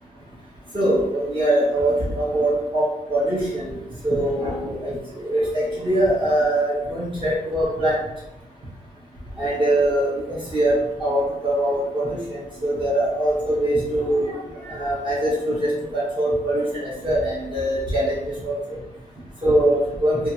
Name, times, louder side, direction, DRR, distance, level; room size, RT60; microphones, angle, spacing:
voice 1, 0.7-3.7 4.0-4.9 5.2-8.0 9.4-12.2 12.6-14.3 14.7-18.2 18.4-18.5 19.4-20.2, right 1 dB, 35° right, -8 dB, 0.9 m, -22 dB
2.8 x 2.4 x 2.7 m, 0.88 s
wide cardioid pair, 130°, 15 cm